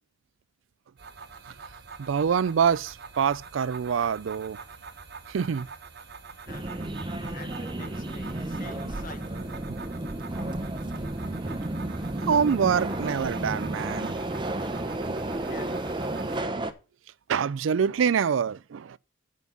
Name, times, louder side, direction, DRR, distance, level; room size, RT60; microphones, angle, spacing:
sound 1, 1.0-16.4, right 5 dB, 60° right, 1.2 m, -45 dB
voice 1, 2.0-4.6 5.3-5.7 10.9-11.0 12.3-14.1 17.3-19.0, right 7 dB, 80° right, 0.4 m, -25 dB
voice 2, 6.3-7.0 7.3-9.6 15.2-16.1, left 3 dB, 45° left, 1.2 m, -47 dB
Subway metro underground, 6.5-16.7, right 1 dB, 25° right, 0.8 m, -32 dB
8.3 x 5.3 x 7.1 m
head